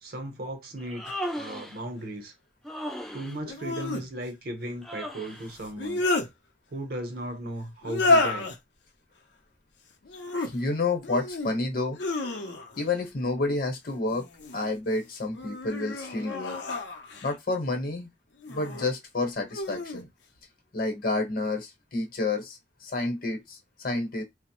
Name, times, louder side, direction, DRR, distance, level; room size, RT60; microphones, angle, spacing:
voice 1, 0.0-1.0 1.3-2.3 3.1-6.0 6.7-8.5, right 1 dB, 60° right, 0.7 m, -36 dB
Human voice, 0.8-1.8 2.6-3.4 4.8-5.5, equal, ahead, 0.3 m, -36 dB
sound 1, 1.1-1.2 3.4-4.1 5.6-6.3 7.8-8.6 10.0-10.5 11.0-11.5 11.9-12.8 14.1-14.7 15.3-17.3 18.4-18.9 19.5-20.0, left 2 dB, 75° left, 0.6 m, -29 dB
voice 2, 10.4-12.0 12.8-14.3 14.5-16.6 17.2-18.1 18.5-20.1 20.7-24.2, left 2 dB, 55° left, 0.9 m, -29 dB
2.9 x 2.0 x 2.9 m
head